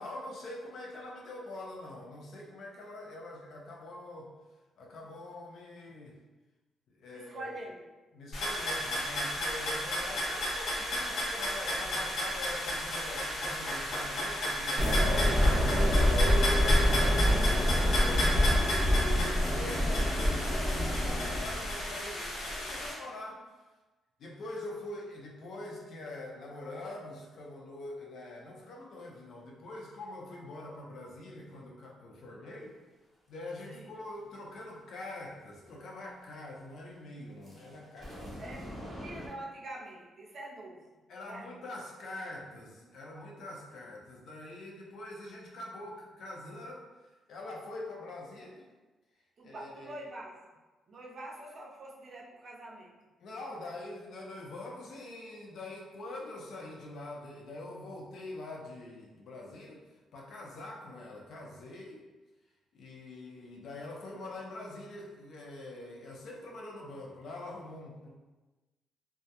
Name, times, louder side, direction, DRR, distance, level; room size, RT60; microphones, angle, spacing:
voice 1, 0.0-4.3 4.8-6.2 6.9-7.5 8.1-18.7 19.2-23.4 24.2-32.8 33.3-38.4 41.1-46.8 47.3-48.7 49.4-50.0 53.2-59.8 60.1-62.0 62.7-68.1, left 2 dB, 55° left, -1 dB, 0.4 m, -44 dB
voice 2, 7.1-7.8 33.7-33.9 38.4-40.8 41.2-41.5 49.4-50.4 50.9-52.9, right 1 dB, 40° right, -3 dB, 0.5 m, -45 dB
sound 1, 8.3-22.9, left 1 dB, 80° left, 0.8 m, -33 dB
sound 2, 14.8-21.7, equal, 10° right, 0.9 m, -26 dB
sound 3, 37.4-39.3, equal, 15° left, 0.7 m, -43 dB
2.2 x 2.0 x 2.7 m, 1.2 s
cardioid pair, 170°, 0 cm